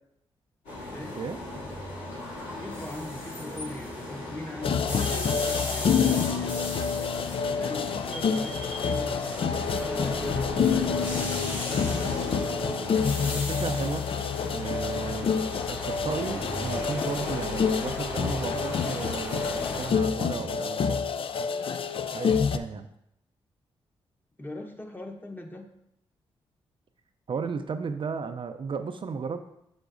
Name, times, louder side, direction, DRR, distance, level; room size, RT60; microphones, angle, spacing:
sound 1, 0.6-19.9, left 1 dB, 80° left, 2.4 m, -36 dB
voice 1, 0.9-1.2 2.6-6.5 7.4-9.3 9.8-11.3 24.4-25.7, left 1 dB, 15° left, 3 dB, 1.1 m, -40 dB
sound 2, 4.6-22.6, left 6 dB, 55° left, 0.4 m, -28 dB
voice 2, 13.2-14.1 14.4-15.3 15.7-21.0 22.1-22.9 27.3-29.4, right 5 dB, 50° right, 7 dB, 0.5 m, -34 dB
6.9 x 5.8 x 2.6 m, 0.79 s
supercardioid pair, 50°, 11 cm